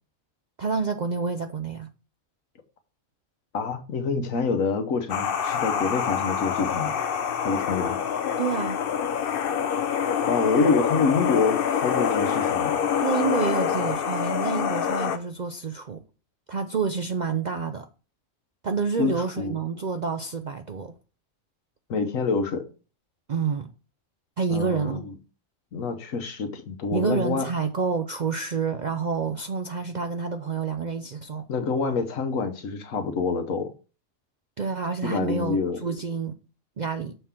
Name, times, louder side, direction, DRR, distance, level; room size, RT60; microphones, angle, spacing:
voice 1, 0.6-1.9 8.4-8.8 13.0-16.0 16.5-17.9 18.6-20.9 23.3-23.7 24.4-25.0 26.9-31.5 34.6-36.4 36.8-37.1, right 5 dB, 55° right, 0.5 m, -28 dB
voice 2, 3.5-6.9 7.4-8.0 10.3-12.8 19.0-19.6 21.9-22.6 24.5-25.1 25.7-27.5 31.5-33.7 35.0-35.8, left 4 dB, 80° left, 1.4 m, -26 dB
sound 1, 5.1-15.2, left 8 dB, 55° left, 0.7 m, -26 dB
6.9 x 3.7 x 5.7 m
omnidirectional pair, 1.4 m